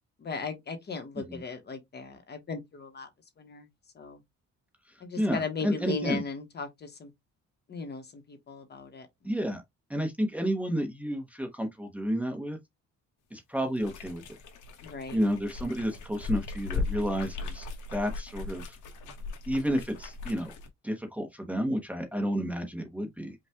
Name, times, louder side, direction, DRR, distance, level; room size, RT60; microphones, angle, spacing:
voice 1, 0.2-3.1 3.4-3.7 3.9-4.2 5.0-7.1 7.7-9.1 14.8-15.2, left 4 dB, 35° left, 1.0 m, -37 dB
voice 2, 5.2-6.2 9.2-9.6 9.9-12.6 13.3-14.2 15.1-18.8 19.5-20.5 20.8-23.3, equal, 5° right, 0.9 m, -31 dB
sound 1, 13.8-20.7, left 4 dB, 85° left, 1.3 m, -38 dB
5.4 x 2.4 x 3.5 m
cardioid pair, 155°, 29 cm